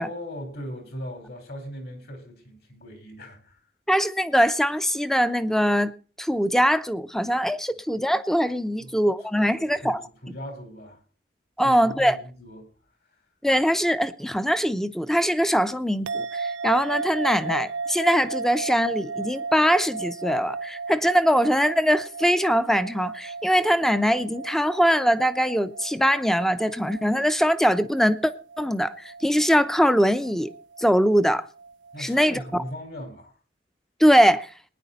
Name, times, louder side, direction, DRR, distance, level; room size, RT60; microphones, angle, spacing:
voice 1, 0.0-3.6 8.8-9.0 9.6-11.0 11.6-12.7 31.9-33.3, equal, 55° left, 4.6 m, -39 dB
voice 2, 3.9-5.9 6.2-10.0 11.6-12.2 13.4-28.3 28.6-30.5 30.8-31.5 32.0-32.4 34.0-34.5, equal, ahead, 0.7 m, -22 dB
sound 1, 16.1-32.6, right 4 dB, 90° right, 0.5 m, -35 dB
20.5 x 10.0 x 4.1 m
head